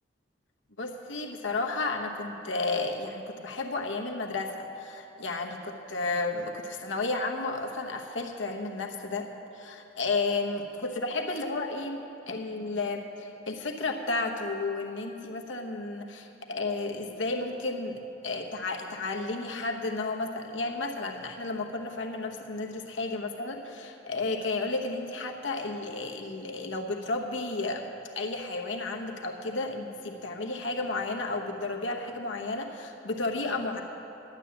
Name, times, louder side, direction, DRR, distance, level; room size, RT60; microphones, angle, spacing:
voice 1, 0.8-9.3 9.5-18.0 18.2-27.9 28.1-33.8, left 3 dB, 85° left, 2 dB, 1.1 m, -32 dB
11.5 x 8.6 x 7.1 m, 2.8 s
head